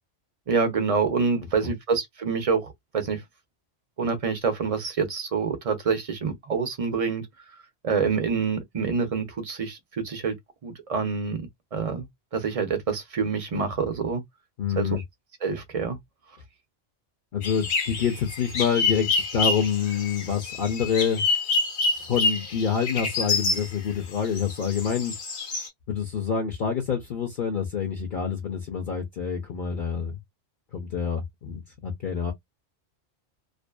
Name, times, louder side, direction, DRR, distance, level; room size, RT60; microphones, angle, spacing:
voice 1, 0.5-3.2 4.0-7.3 7.8-10.3 10.6-12.1 12.3-14.2 14.8-15.0 15.4-16.0, right 5 dB, 40° right, 0.6 m, -27 dB
voice 2, 14.6-15.0 17.3-21.2 22.1-25.1 25.9-30.2 30.7-32.3, left 7 dB, 55° left, 0.8 m, -27 dB
sound 1, 17.4-23.7 24.2-25.7, left 4 dB, 80° left, 1.2 m, -27 dB
2.6 x 2.2 x 2.2 m
omnidirectional pair, 1.1 m